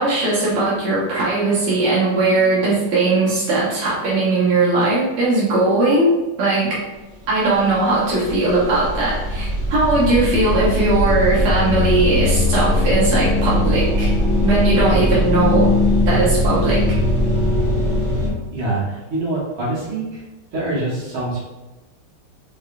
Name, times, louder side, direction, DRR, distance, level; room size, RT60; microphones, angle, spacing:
voice 1, 0.0-6.1 6.4-6.8 7.3-14.1 14.4-15.7 16.1-16.8, right 2 dB, 85° right, -8 dB, 1.9 m, -19 dB
sound 1, 7.3-7.4 7.6-18.3, left 1 dB, 50° right, 1.1 m, -20 dB
voice 2, 18.5-20.2 20.5-21.4, right 2 dB, 70° right, -7 dB, 2.0 m, -25 dB
5.2 x 2.2 x 2.4 m, 1.1 s
omnidirectional pair, 2.4 m